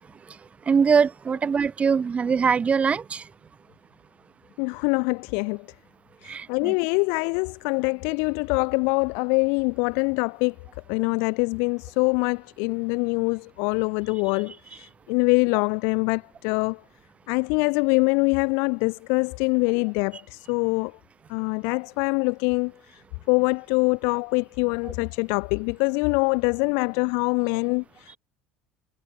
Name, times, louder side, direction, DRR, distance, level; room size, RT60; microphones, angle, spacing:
voice 1, 0.7-3.2 6.2-6.7, right 6 dB, 30° right, 1.3 m, -22 dB
voice 2, 4.6-5.6 6.2-10.5 10.9-16.8 17.3-20.9 21.3-22.7 23.3-28.2, left 37 dB, 65° left, 0.8 m, -24 dB
hypercardioid pair, 70°, 4 cm